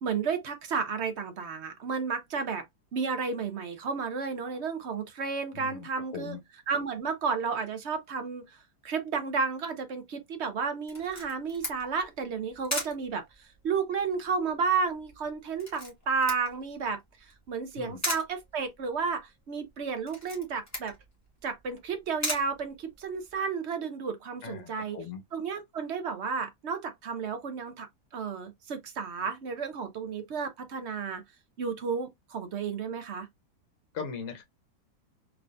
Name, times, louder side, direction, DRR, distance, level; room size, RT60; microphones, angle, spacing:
voice 1, 0.0-2.6 2.9-6.4 6.7-8.4 8.8-13.2 13.6-17.0 17.5-20.9 21.4-25.0 25.3-27.9 28.1-31.2 31.6-33.3, right 5 dB, 55° right, 0.8 m, -32 dB
voice 2, 5.5-5.9 6.1-6.4 17.7-18.0 24.4-25.2 33.9-34.4, left 6 dB, 55° left, 1.3 m, -39 dB
Camera, 10.9-23.4, left 1 dB, 10° left, 1.5 m, -39 dB
3.7 x 3.3 x 2.5 m
omnidirectional pair, 1.7 m